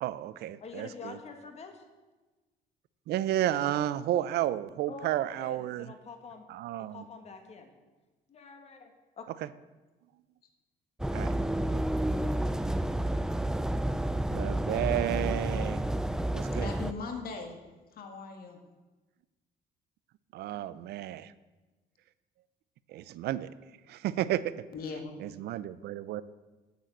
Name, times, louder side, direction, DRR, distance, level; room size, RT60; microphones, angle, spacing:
voice 1, 0.0-1.2 3.1-5.9 6.5-7.0 9.4-9.5 11.1-11.3 14.3-15.8 16.3-16.7 20.3-21.3 22.9-23.5 23.9-24.6 25.2-26.2, right 13 dB, 75° right, 16 dB, 0.6 m, -32 dB
voice 2, 0.6-1.9 4.9-6.5 6.8-7.7 8.3-9.2, left 4 dB, 40° left, 5 dB, 1.8 m, -46 dB
sound 1, 11.0-16.9, right 1 dB, 5° right, 0.4 m, -30 dB
voice 3, 16.6-17.6 17.9-18.6 24.7-25.1, left 4 dB, 60° left, 4 dB, 1.9 m, -39 dB
9.2 x 7.5 x 8.0 m, 1.2 s
cardioid pair, 110°, 17 cm